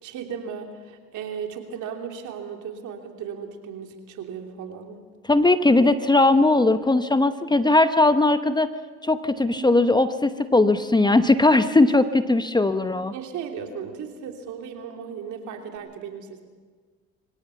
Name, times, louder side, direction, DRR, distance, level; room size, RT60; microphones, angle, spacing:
voice 1, 0.0-5.0 13.1-16.4, right 7 dB, 65° right, 3 dB, 3.2 m, -36 dB
voice 2, 5.3-8.7 9.0-13.1, left 2 dB, 15° left, 11 dB, 0.9 m, -19 dB
Bass guitar, 9.5-15.8, left 4 dB, 80° right, 2.7 m, -44 dB
24.5 x 17.0 x 7.1 m, 1.5 s
supercardioid pair, 75°, 32 cm